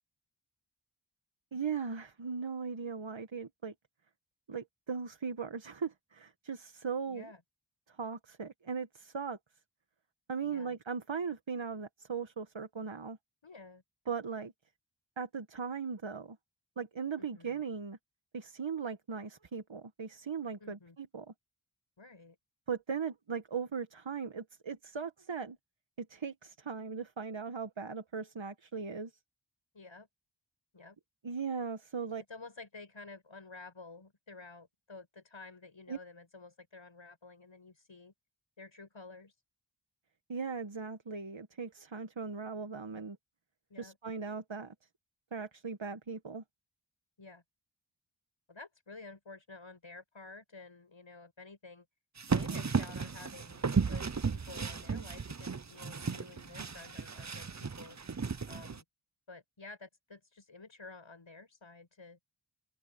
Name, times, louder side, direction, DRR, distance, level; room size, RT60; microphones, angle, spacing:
voice 1, 1.5-3.7 4.5-7.3 7.9-9.4 10.3-13.2 14.1-14.5 15.2-16.4 16.8-18.0 18.3-21.3 22.7-25.6 26.0-29.1 31.2-32.2 35.9-36.0 40.3-43.2 43.8-44.7 45.3-46.4, right 5 dB, 75° right, 1.6 m, -38 dB
voice 2, 7.1-7.4 10.4-10.8 13.4-13.8 17.2-17.6 20.6-21.0 22.0-22.4 29.7-30.1 30.7-31.0 32.3-38.1 38.6-39.3 43.7-44.0 47.2-47.4 48.5-51.9 52.3-58.0 58.5-58.8 59.3-62.2, left 3 dB, 80° left, 7.8 m, -51 dB
sound 1, 52.2-58.8, right 5 dB, 35° right, 0.8 m, -34 dB
open air
wide cardioid pair, 40°, 46 cm